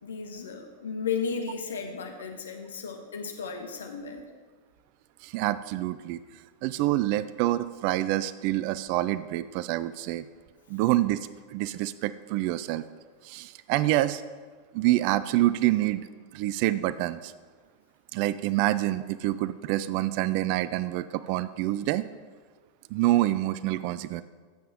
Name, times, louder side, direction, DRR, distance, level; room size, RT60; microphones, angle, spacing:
voice 1, 0.0-4.2, left 5 dB, 65° left, 4 dB, 1.2 m, -34 dB
voice 2, 5.2-6.2 6.6-10.3 10.7-11.2 11.5-12.8 13.2-14.2 14.7-16.1 16.3-17.3 18.1-22.1 22.9-24.2, right 15 dB, 45° right, 16 dB, 0.4 m, -27 dB
15.0 x 7.8 x 3.5 m, 1.5 s
figure-of-eight pair, 90°, 0 cm